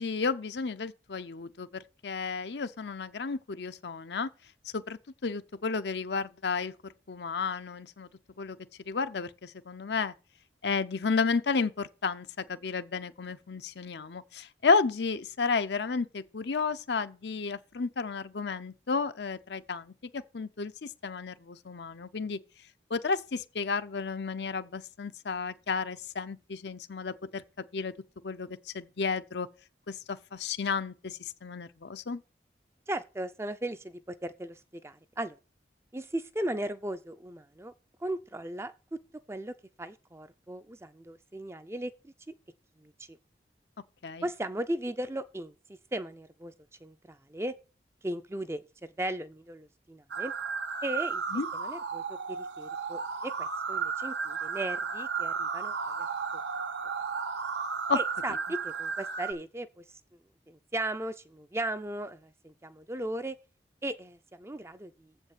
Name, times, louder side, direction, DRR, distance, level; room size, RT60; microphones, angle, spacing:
voice 1, 0.0-4.3 4.7-8.1 8.4-8.6 8.9-10.1 10.6-22.4 22.9-27.4 27.7-27.9 28.2-28.5 28.7-29.5 29.9-32.2 44.0-44.3 51.3-51.5 57.9-58.0, left 4 dB, 75° left, 0.7 m, -32 dB
voice 2, 32.9-35.4 35.9-37.7 38.0-38.7 39.1-42.3 42.8-43.2 44.2-45.5 45.9-46.5 46.8-47.6 48.0-48.6 49.0-50.3 50.8-51.2 51.5-56.1 57.9-59.8 60.5-63.4 63.8-65.1, right 1 dB, 15° right, 0.5 m, -37 dB
sound 1, 50.1-59.3, right 5 dB, 80° right, 0.9 m, -34 dB
7.6 x 5.4 x 7.4 m
head